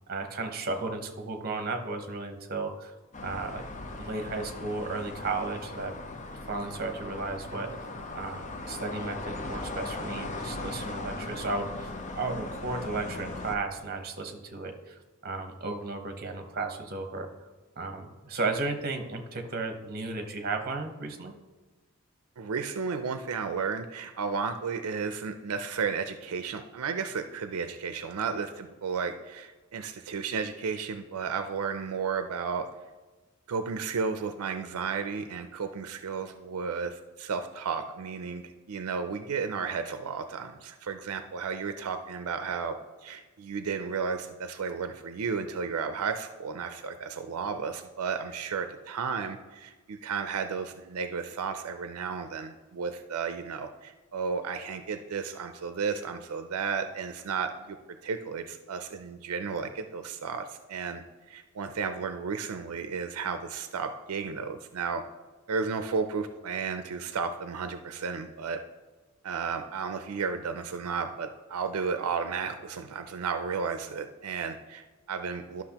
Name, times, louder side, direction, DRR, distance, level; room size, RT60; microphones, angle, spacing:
voice 1, 0.1-2.9 3.2-3.6 4.0-5.9 6.5-7.9 8.1-17.3 17.8-21.3, right 3 dB, 45° right, 5 dB, 0.9 m, -34 dB
sound 1, 3.1-13.5, left 2 dB, 35° left, 0.6 m, -39 dB
voice 2, 22.4-32.7 33.5-38.4 38.7-42.8 43.0-57.8 58.0-61.0 61.3-65.0 65.5-68.6 69.2-75.6, right 5 dB, 85° right, 8 dB, 0.5 m, -33 dB
12.0 x 6.0 x 2.9 m, 1.3 s
head